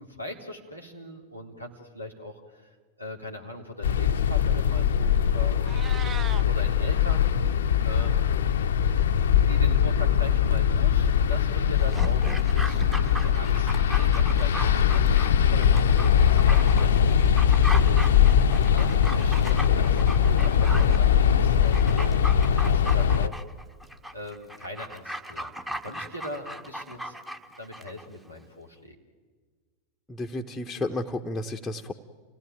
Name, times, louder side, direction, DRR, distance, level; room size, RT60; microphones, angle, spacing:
voice 1, 0.0-5.7 6.3-8.4 9.5-22.2 22.6-23.4 24.1-27.2 27.6-29.0, left 1 dB, 90° right, 1 dB, 3.4 m, -40 dB
sound 1, 3.8-23.3, left 8 dB, 65° left, 0.7 m, -21 dB
Meow, 5.5-6.4, right 7 dB, 25° right, 0.7 m, -38 dB
Dog, 11.8-28.1 28.4-28.5, right 1 dB, 5° right, 1.3 m, -37 dB
voice 2, 30.1-31.9, left 2 dB, 10° left, 2 dB, 1.0 m, -32 dB
28.5 x 17.0 x 9.4 m, 1.5 s
figure-of-eight pair, 90°, 0 cm